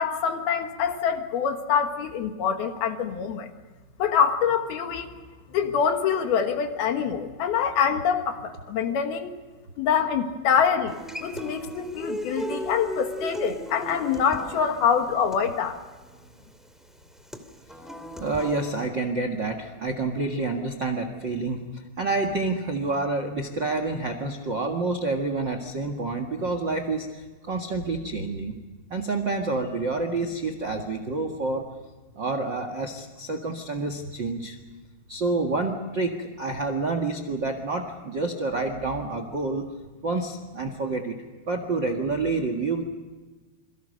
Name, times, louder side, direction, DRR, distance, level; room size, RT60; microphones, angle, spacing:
voice 1, 0.0-3.5 4.0-5.1 5.5-9.3 9.8-15.8, left 7 dB, 70° left, 6 dB, 3.3 m, -25 dB
Human voice / Acoustic guitar, 10.9-18.9, equal, ahead, 1.0 m, -37 dB
voice 2, 18.2-28.5 28.9-31.7 32.1-34.6 35.1-39.7 40.0-41.1 41.5-42.8, right 3 dB, 50° right, 6 dB, 1.4 m, -28 dB
28.0 x 23.0 x 6.6 m, 1.3 s
omnidirectional pair, 4.9 m